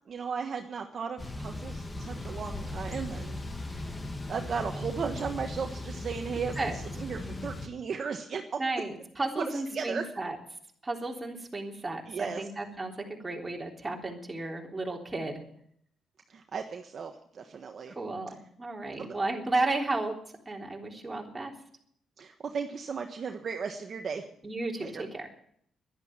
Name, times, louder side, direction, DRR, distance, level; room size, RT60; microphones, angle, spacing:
voice 1, 0.1-3.4 3.6-3.9 4.3-8.6 9.4-10.0 12.1-12.4 16.3-17.9 19.0-19.2 22.2-24.2 24.8-25.0, right 6 dB, 50° right, 4 dB, 1.3 m, -36 dB
Thunder / Bicycle, 1.2-7.7, left 2 dB, 20° left, 1.8 m, -38 dB
voice 2, 8.6-10.4 10.8-15.4 18.0-20.1 20.5-21.5 24.4-25.3, right 2 dB, 20° right, 0 dB, 3.5 m, -33 dB
11.5 x 10.5 x 8.8 m, 0.67 s
cardioid pair, 90°, 0 cm